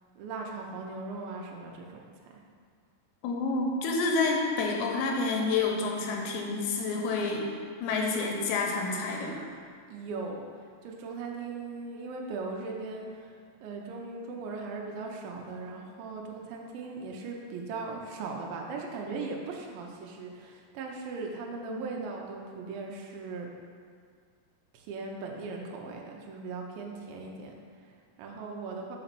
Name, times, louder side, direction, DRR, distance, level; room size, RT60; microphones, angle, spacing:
voice 1, 0.2-2.4 9.9-23.5 24.7-29.0, right 3 dB, 80° right, 0 dB, 2.4 m, -39 dB
voice 2, 3.2-7.5 7.8-9.5 21.7-21.8, left 3 dB, 85° left, 1 dB, 2.7 m, -29 dB
5.3 x 4.9 x 5.9 m, 2.1 s
omnidirectional pair, 4.4 m